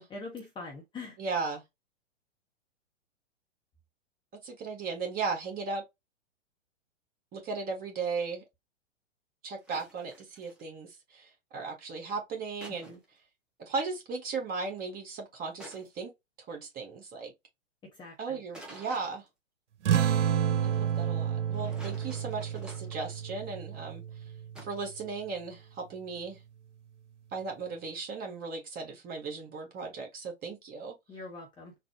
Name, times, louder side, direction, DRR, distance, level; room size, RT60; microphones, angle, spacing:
voice 1, 0.1-1.2 12.9-13.0 17.9-18.4 21.6-21.9 31.1-31.7, left 3 dB, 15° left, 0.8 m, -43 dB
voice 2, 1.2-1.6 4.4-5.8 7.3-8.4 9.4-12.9 13.6-16.1 16.5-17.3 18.2-19.2 20.6-24.0 24.6-26.4 27.3-31.0, right 4 dB, 25° right, 1.4 m, -36 dB
sound 1, 9.6-10.6 12.6-13.1 15.6-16.1 18.5-19.3 21.5-23.5 24.5-24.8, right 1 dB, 5° right, 0.3 m, -50 dB
sound 2, 19.8-24.9, right 9 dB, 70° right, 0.7 m, -30 dB
4.0 x 2.1 x 2.7 m
figure-of-eight pair, 110°, 37 cm